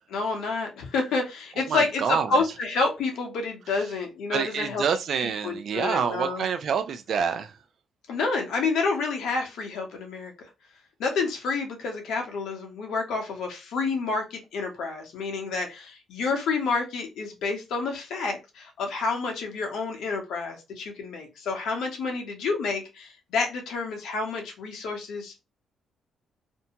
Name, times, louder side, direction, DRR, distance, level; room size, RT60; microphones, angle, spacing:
voice 1, 0.1-4.8 5.4-6.5 8.1-10.3 11.0-25.4, left 4 dB, 80° left, 0.9 m, -29 dB
voice 2, 1.7-2.4 3.7-3.8 4.3-7.5, right 7 dB, 60° right, 0.4 m, -27 dB
2.7 x 2.2 x 2.7 m
cardioid pair, 90°, 0 cm